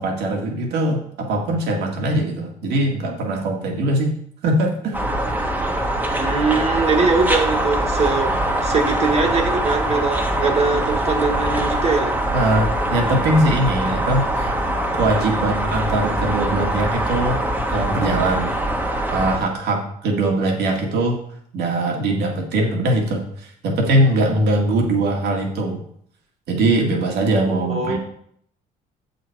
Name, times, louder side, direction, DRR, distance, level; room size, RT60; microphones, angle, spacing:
voice 1, 0.0-4.1 4.4-5.0 12.3-14.5 14.9-17.4 17.7-18.5 19.1-21.2 21.5-25.8 26.5-28.0, right 1 dB, 75° right, 1 dB, 2.1 m, -21 dB
sound 1, 4.9-19.4, right 1 dB, 10° right, 1.3 m, -23 dB
voice 2, 6.1-8.3 8.6-12.2 27.4-28.0, right 4 dB, 40° right, 3 dB, 1.5 m, -22 dB
7.8 x 6.5 x 4.6 m, 0.66 s
cardioid pair, 110°, 17 cm